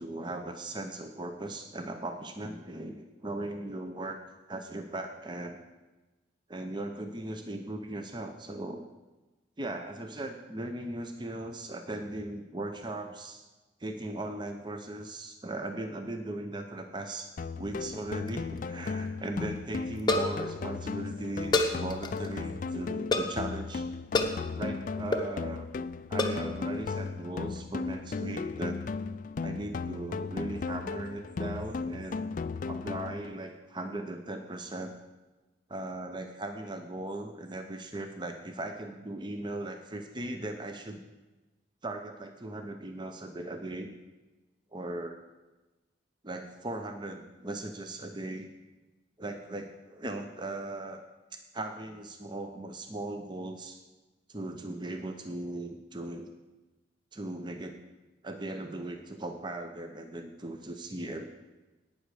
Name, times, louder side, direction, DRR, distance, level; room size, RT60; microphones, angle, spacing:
voice 1, 0.0-4.2 4.5-5.6 6.5-8.8 9.6-13.5 13.8-17.3 17.6-23.8 24.6-25.7 26.1-28.8 29.4-32.3 32.7-34.9 35.7-41.0 41.8-43.9 44.7-45.1 46.2-48.5 49.2-51.0 51.3-53.8 54.3-56.3 57.1-57.8 58.2-61.2, right 2 dB, 25° right, 6 dB, 0.7 m, -38 dB
sound 1, 17.4-33.4, left 4 dB, 45° left, 0.3 m, -36 dB
sound 2, 17.8-18.3 18.6-18.7 18.9-19.0 20.0-20.5 21.5-22.3 23.1-23.4 24.1-24.4 25.1-25.3 26.2-26.5, left 2 dB, 25° left, 0.8 m, -28 dB
11.5 x 9.0 x 4.9 m, 1.1 s
head